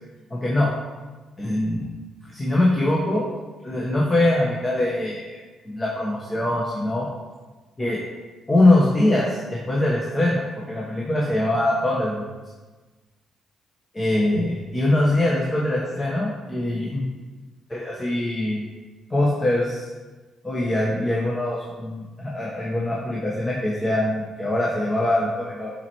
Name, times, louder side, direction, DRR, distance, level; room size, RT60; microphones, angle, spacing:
voice 1, 0.3-0.7 1.4-1.8 2.3-3.3 3.6-5.4 5.6-7.1 7.8-8.0 8.5-10.4 10.7-12.3 13.9-17.0 17.7-18.6 19.1-19.9 20.4-25.7, left 1 dB, 20° left, -4 dB, 1.1 m, -22 dB
7.2 x 4.4 x 3.0 m, 1.3 s
cardioid pair, 90°, 0 cm